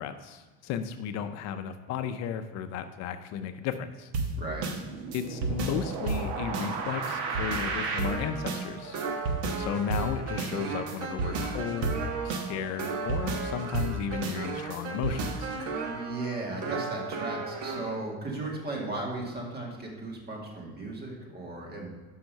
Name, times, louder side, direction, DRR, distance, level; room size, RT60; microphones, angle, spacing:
voice 1, 0.0-4.1 5.1-9.1 9.6-15.5, left 8 dB, 55° left, 9 dB, 0.5 m, -34 dB
sound 1, 4.1-18.0, right 4 dB, 70° right, 1.1 m, -32 dB
voice 2, 15.9-21.9, right 2 dB, 30° right, -1 dB, 2.0 m, -36 dB
5.9 x 5.6 x 5.2 m, 1.4 s
supercardioid pair, 115°, 32 cm